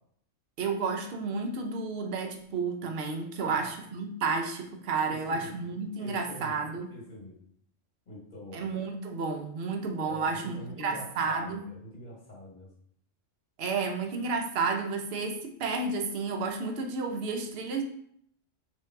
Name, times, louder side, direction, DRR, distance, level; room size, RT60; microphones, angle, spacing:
voice 1, 0.6-6.9 8.5-11.7 13.6-17.8, right 4 dB, 55° right, 4 dB, 0.8 m, -31 dB
voice 2, 3.4-3.7 5.0-5.5 6.0-6.6 6.9-7.3 8.1-8.6 10.1-12.7, equal, 40° left, -4 dB, 1.6 m, -44 dB
3.5 x 2.9 x 4.5 m, 0.66 s
omnidirectional pair, 1.3 m